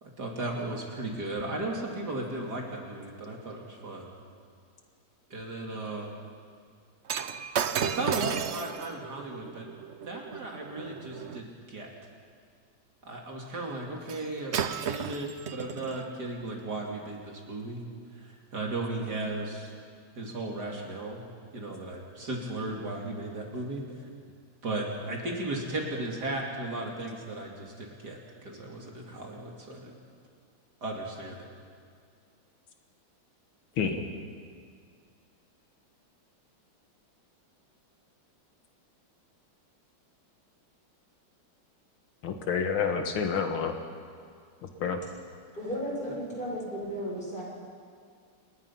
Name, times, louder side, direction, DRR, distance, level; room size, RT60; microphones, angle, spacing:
voice 1, 0.0-4.1 5.3-6.1 7.8-9.6 10.0-11.9 13.0-17.8 18.1-19.7 20.1-21.2 21.5-23.8 24.6-29.9 30.8-31.5, right 2 dB, 50° right, 0 dB, 3.0 m, -36 dB
Shatter, 7.1-11.4 14.1-14.3 14.5-16.0 16.8-16.9, right 7 dB, 80° right, 0.6 m, -34 dB
voice 2, 42.2-43.8 44.6-45.0, left 6 dB, 80° left, 5 dB, 2.2 m, -29 dB
voice 3, 45.6-47.4, equal, 25° left, -4 dB, 7.5 m, -34 dB
28.0 x 20.5 x 5.7 m, 2.2 s
omnidirectional pair, 2.3 m